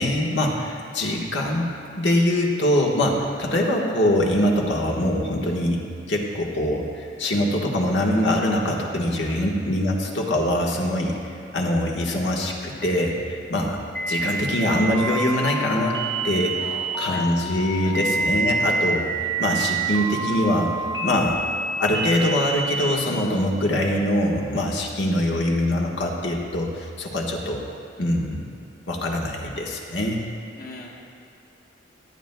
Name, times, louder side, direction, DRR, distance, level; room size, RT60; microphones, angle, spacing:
voice 1, 0.0-11.1 11.5-13.8 14.1-16.6 17.0-19.0 19.4-20.7 21.0-21.4 21.8-27.6 28.0-28.4 28.9-30.2, left 1 dB, 70° left, -1 dB, 1.3 m, -23 dB
sound 1, 13.9-23.0, right 3 dB, 15° left, 1.0 m, -27 dB
voice 2, 16.6-17.2 17.8-18.0 19.2-19.3 30.6-31.0, left 2 dB, 50° left, -2 dB, 1.4 m, -40 dB
17.0 x 9.2 x 2.3 m, 2.6 s
head